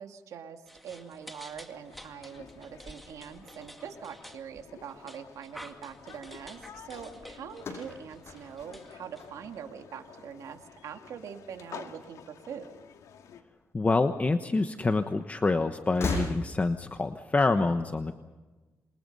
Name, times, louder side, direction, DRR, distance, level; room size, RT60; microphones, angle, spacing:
voice 1, 0.0-12.7, right 7 dB, 80° right, 5 dB, 2.4 m, -43 dB
sound 1, 0.7-9.7, equal, ahead, 2.1 m, -51 dB
sound 2, 1.7-13.4, left 8 dB, 85° left, 2.0 m, -51 dB
sound 3, 7.6-9.9 10.2-10.8 11.8-12.9 13.1-13.2 14.4-14.5 15.8-16.9, left 2 dB, 50° left, 7.0 m, -37 dB
voice 2, 13.7-18.2, left 3 dB, 25° left, 8 dB, 1.1 m, -26 dB
27.5 x 23.0 x 5.5 m, 1.2 s
cardioid pair, 90°, 6 cm